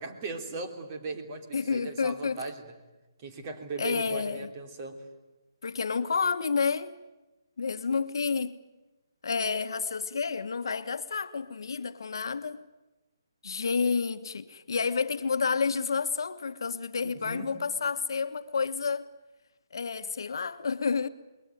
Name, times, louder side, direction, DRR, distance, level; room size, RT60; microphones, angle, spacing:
voice 1, 0.0-2.7 3.2-5.0 17.0-17.5, right 3 dB, 30° right, 3.3 m, -38 dB
voice 2, 1.5-2.4 3.8-4.5 5.6-7.0 7.6-8.5 9.2-12.6 13.4-19.0 19.7-21.1, left 5 dB, 65° left, 1.4 m, -30 dB
28.0 x 22.0 x 9.3 m
hypercardioid pair, 165°, 2 cm